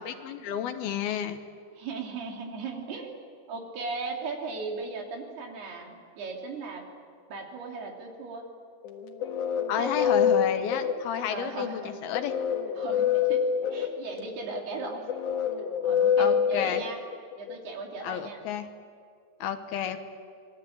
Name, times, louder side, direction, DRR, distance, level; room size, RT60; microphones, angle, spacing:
voice 1, 0.0-1.4 9.7-12.3 16.2-16.8 18.0-18.7 19.4-20.0, left 9 dB, 75° left, 8 dB, 2.9 m, -31 dB
voice 2, 1.8-3.1 3.5-6.8 7.3-8.4 9.8-10.2 11.3-11.9 12.8-13.5 13.7-15.1 15.8-17.0 17.4-18.4, right 4 dB, 75° right, 1 dB, 5.1 m, -37 dB
sound 1, 8.8-17.5, left 7 dB, 60° left, 2.7 m, -27 dB
26.0 x 20.5 x 8.7 m, 2.2 s
omnidirectional pair, 4.7 m